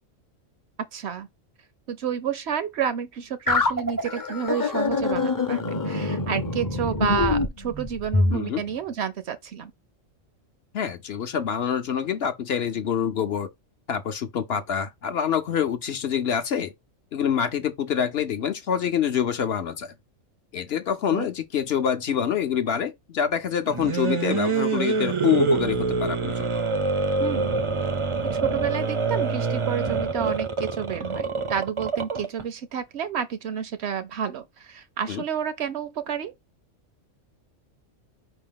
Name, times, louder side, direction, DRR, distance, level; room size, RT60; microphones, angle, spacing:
voice 1, 0.9-1.3 1.9-9.7 21.1-21.3 27.2-27.6 28.3-36.3, right 8 dB, 65° right, 0.8 m, -30 dB
sound 1, 3.5-8.4, left 3 dB, 20° left, 0.5 m, -25 dB
voice 2, 8.3-8.6 10.7-13.5 13.9-16.7 17.1-19.9 20.5-26.6 35.1-35.2, left 8 dB, 60° left, 0.8 m, -26 dB
sound 2, 23.7-32.4, right 4 dB, 40° right, 0.4 m, -25 dB
5.0 x 2.9 x 3.6 m
omnidirectional pair, 1.3 m